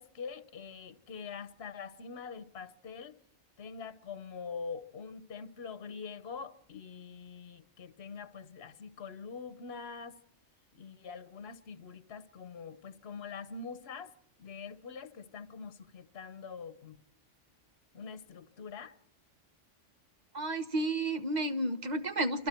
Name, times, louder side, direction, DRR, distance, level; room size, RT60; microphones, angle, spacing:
voice 1, 0.0-3.2 3.6-10.2 10.7-14.1 14.4-17.0 17.9-18.9, left 5 dB, 60° left, 1.3 m, -44 dB
voice 2, 20.3-22.5, right 1 dB, 35° right, 1.4 m, -31 dB
28.0 x 27.0 x 4.5 m
omnidirectional pair, 1.2 m